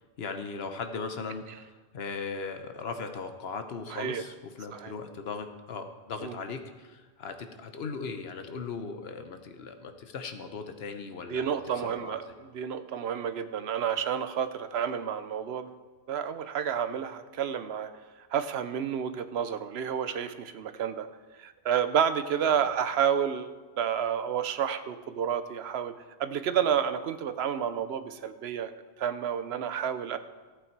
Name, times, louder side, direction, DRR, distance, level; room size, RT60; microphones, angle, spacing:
voice 1, 0.2-11.6 11.8-12.2 22.5-22.7, left 4 dB, 70° left, 7 dB, 1.2 m, -38 dB
voice 2, 3.9-4.2 4.7-4.9 6.2-6.4 11.3-15.8 16.1-17.9 18.3-21.1 21.4-28.7 29.0-30.2, right 8 dB, 70° right, 11 dB, 0.9 m, -30 dB
14.0 x 8.4 x 4.6 m, 1.3 s
omnidirectional pair, 1.1 m